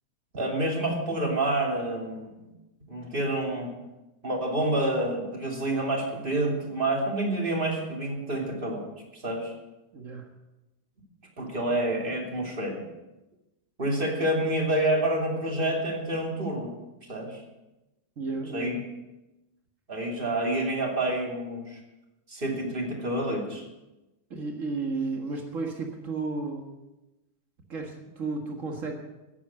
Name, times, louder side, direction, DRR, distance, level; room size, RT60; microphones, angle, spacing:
voice 1, 0.3-2.3 2.9-3.7 4.2-8.8 9.1-9.5 11.4-12.8 13.8-16.7 17.1-17.4 18.5-18.8 19.9-21.8 22.3-23.6, right 1 dB, 15° right, 0 dB, 2.3 m, -28 dB
voice 2, 9.9-10.3 18.2-18.7 24.3-26.7 27.7-28.9, right 3 dB, 80° right, 2 dB, 0.7 m, -33 dB
15.5 x 10.5 x 7.5 m, 1.0 s
omnidirectional pair, 4.1 m